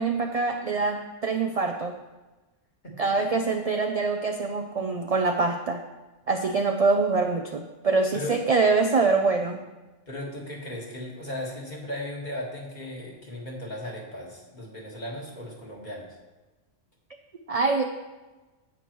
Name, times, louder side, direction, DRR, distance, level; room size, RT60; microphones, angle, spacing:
voice 1, 0.0-2.0 3.0-5.8 6.3-9.6 17.5-17.8, right 4 dB, 55° right, 4 dB, 0.4 m, -24 dB
voice 2, 2.8-3.3 8.1-8.4 10.1-16.2, left 1 dB, 35° left, -3 dB, 1.8 m, -36 dB
9.6 x 8.4 x 3.1 m, 1.2 s
omnidirectional pair, 1.3 m